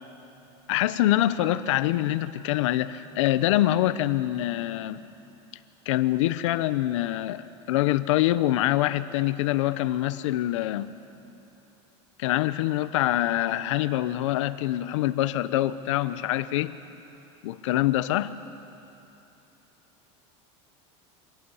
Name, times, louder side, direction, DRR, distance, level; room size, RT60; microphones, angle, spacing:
voice 1, 0.7-5.0 5.9-10.9 12.2-16.7 17.4-18.3, left 14 dB, 85° left, 14 dB, 0.8 m, -25 dB
25.5 x 18.0 x 5.6 m, 3.0 s
supercardioid pair, 145°, 15 cm